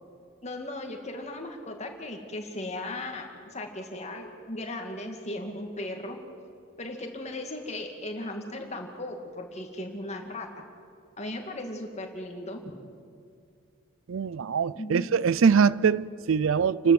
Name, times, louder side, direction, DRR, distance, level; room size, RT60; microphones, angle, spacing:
voice 1, 0.4-6.2 6.8-10.6 11.2-12.6 14.7-15.1, left 1 dB, 35° left, 2.4 m, -37 dB
voice 2, 14.1-16.9, right 6 dB, 75° right, 0.5 m, -23 dB
29.5 x 12.5 x 8.0 m
head